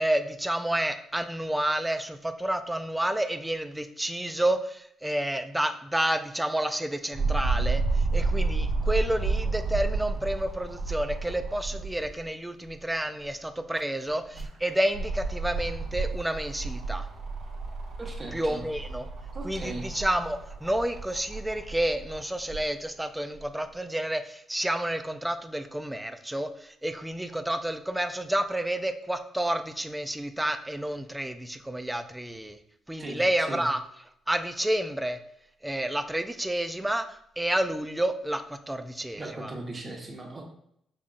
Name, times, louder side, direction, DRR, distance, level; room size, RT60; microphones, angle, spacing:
voice 1, 0.0-17.1 18.3-19.1 19.4-32.6 32.9-33.8 34.3-35.2 35.6-39.5, right 1 dB, 10° right, 8 dB, 0.4 m, -30 dB
sound 1, 7.1-12.2 12.6-12.7 14.1-22.6 23.4-23.5, right 3 dB, 65° right, 1.1 m, -31 dB
voice 2, 18.0-18.6 19.3-19.9 33.0-33.6 39.2-40.4, right 2 dB, 30° right, 0 dB, 1.2 m, -38 dB
5.5 x 3.6 x 2.5 m, 0.73 s
cardioid pair, 90°, 0 cm